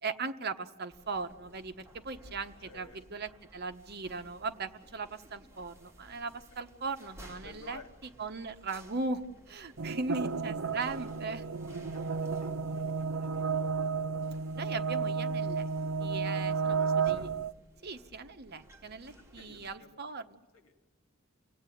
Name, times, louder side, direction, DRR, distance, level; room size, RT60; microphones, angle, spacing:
voice 1, 0.0-11.5 14.5-15.6 16.0-17.3 17.8-20.4, right 3 dB, 50° right, 8 dB, 1.1 m, -38 dB
sound 1, 0.9-19.8, right 1 dB, 15° right, 2.4 m, -57 dB
voice 2, 2.6-3.0 7.4-7.9 10.9-11.0 11.7-13.9 16.7-17.4 19.4-20.2 20.5-20.7, left 3 dB, 80° left, 7 dB, 2.2 m, -55 dB
sound 2, 9.8-17.5, right 5 dB, 75° right, 0.7 m, -32 dB
28.5 x 17.5 x 9.2 m, 1.2 s
head